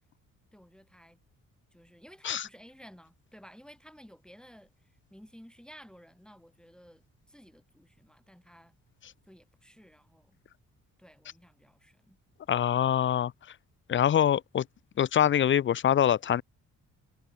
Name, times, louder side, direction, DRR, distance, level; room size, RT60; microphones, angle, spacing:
voice 1, 0.5-1.2 1.7-8.7 9.3-10.4 11.0-12.2, equal, 5° left, 2.5 m, -54 dB
voice 2, 12.5-13.3 13.9-14.7 15.0-16.4, left 10 dB, 40° left, 0.6 m, -24 dB
cardioid pair, 90°, 30 cm